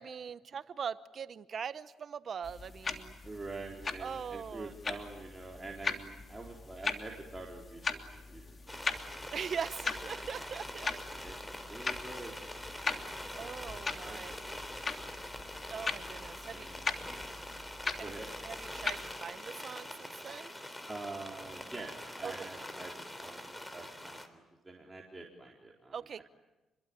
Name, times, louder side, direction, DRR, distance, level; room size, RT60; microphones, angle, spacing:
voice 1, 0.0-3.1 4.0-4.7 9.3-10.9 13.4-14.3 15.7-16.7 18.0-18.1 18.4-20.5 22.2-22.5 25.9-26.2, right 7 dB, 50° right, 14 dB, 0.9 m, -41 dB
sound 1, 2.4-19.1, left 4 dB, 35° left, 2.9 m, -40 dB
voice 2, 3.2-9.0 10.2-10.5 10.9-11.4 11.7-13.5 14.0-15.1 16.5-16.9 18.0-18.3 20.9-26.2, right 3 dB, 20° right, -1 dB, 4.2 m, -47 dB
sound 2, 8.7-24.3, left 1 dB, 10° left, 3.6 m, -44 dB
29.0 x 22.5 x 9.0 m, 1.1 s
cardioid pair, 90°, 0 cm